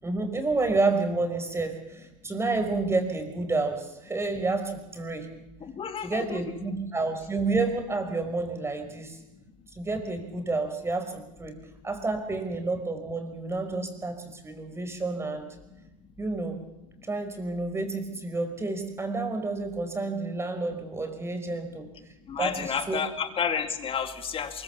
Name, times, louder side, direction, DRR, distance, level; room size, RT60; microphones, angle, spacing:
voice 1, 0.0-5.3 6.0-9.2 9.7-11.5 11.8-15.5 16.2-16.6 17.1-21.9 22.4-23.0, right 3 dB, 15° right, 6 dB, 5.0 m, -29 dB
voice 2, 5.6-6.6 22.3-24.6, left 7 dB, 30° left, 8 dB, 2.5 m, -31 dB
23.5 x 23.0 x 7.2 m, 0.92 s
supercardioid pair, 115°, 18 cm